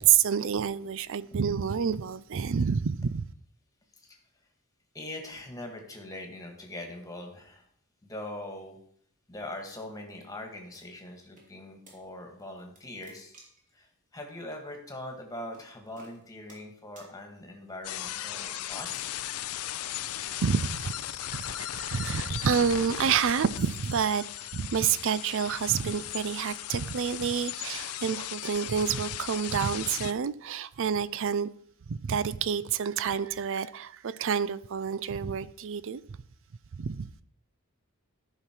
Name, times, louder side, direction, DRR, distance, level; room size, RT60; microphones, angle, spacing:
voice 1, 0.0-3.2 20.4-21.0 21.3-24.2 24.5-31.5 31.9-36.0 36.7-37.1, right 7 dB, 60° right, 0.5 m, -28 dB
voice 2, 4.9-7.6 8.0-8.8 9.3-13.4 13.7-19.2, left 1 dB, 15° left, 1.8 m, -42 dB
sound 1, 10.7-11.5 11.9-12.0 12.4-13.7 14.5-14.6 15.5-15.7 16.0-16.7 17.0-17.1 17.8-18.3 19.3-20.9 21.1-21.7 22.4-22.7 23.3-24.0, right 2 dB, 35° right, 2.9 m, -57 dB
sound 2, 17.8-30.1, left 12 dB, 85° left, 0.5 m, -37 dB
13.0 x 5.8 x 4.5 m
head